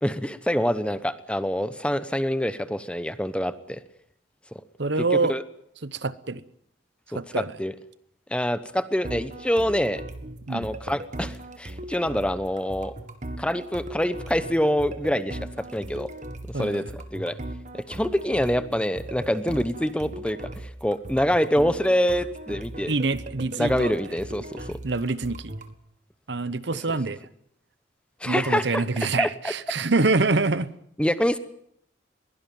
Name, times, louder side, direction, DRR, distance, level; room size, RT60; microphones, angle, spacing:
voice 1, 0.0-3.8 5.0-5.4 7.1-7.7 8.3-10.0 10.5-12.9 13.4-15.4 15.7-16.1 16.6-17.4 17.7-22.9 23.6-24.8 28.2-28.8 29.2-29.5 31.0-31.4, equal, 5° left, 0.9 m, -26 dB
voice 2, 4.8-5.4 5.8-6.4 7.1-7.5 10.5-10.7 16.5-16.8 22.9-23.9 24.8-25.5 26.3-27.2 28.2-30.7, right 3 dB, 60° right, 0.9 m, -25 dB
sound 1, 9.0-25.7, right 1 dB, 40° right, 1.7 m, -38 dB
22.5 x 17.0 x 9.2 m
head